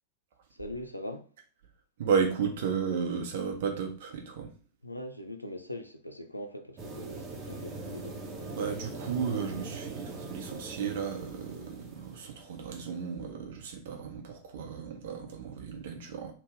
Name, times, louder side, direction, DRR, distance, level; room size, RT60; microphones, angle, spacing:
voice 1, 0.5-1.3 4.8-8.2, left 1 dB, 85° left, 0.4 m, -41 dB
voice 2, 2.0-4.5 8.5-16.3, right 6 dB, 55° right, 0.8 m, -33 dB
sound 1, 6.8-12.7, right 3 dB, 30° right, 1.0 m, -41 dB
3.5 x 2.3 x 3.5 m
figure-of-eight pair, 90°, 0 cm